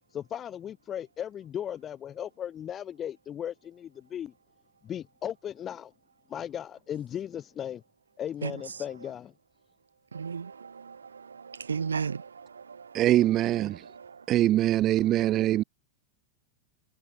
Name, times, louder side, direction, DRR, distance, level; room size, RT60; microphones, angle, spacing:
voice 1, 0.1-4.3 4.8-5.9 6.3-7.8 8.2-9.3, left 9 dB, 25° left, 1.3 m, -36 dB
voice 2, 10.1-13.0 13.8-14.2, right 6 dB, 75° right, 1.1 m, -35 dB
voice 3, 12.9-13.8 14.3-15.6, right 13 dB, 35° right, 1.0 m, -23 dB
figure-of-eight pair, 90°, 0 cm